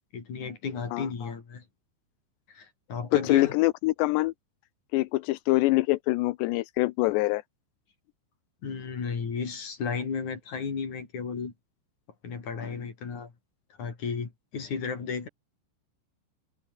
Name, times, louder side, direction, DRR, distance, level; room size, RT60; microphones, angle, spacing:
voice 1, 0.1-1.6 2.5-3.5 8.6-11.5 12.2-13.3 13.8-15.3, left 5 dB, 45° left, 5.0 m, -34 dB
voice 2, 3.3-4.3 4.9-7.4, left 20 dB, 85° left, 2.9 m, -25 dB
omnidirectional pair, 5.0 m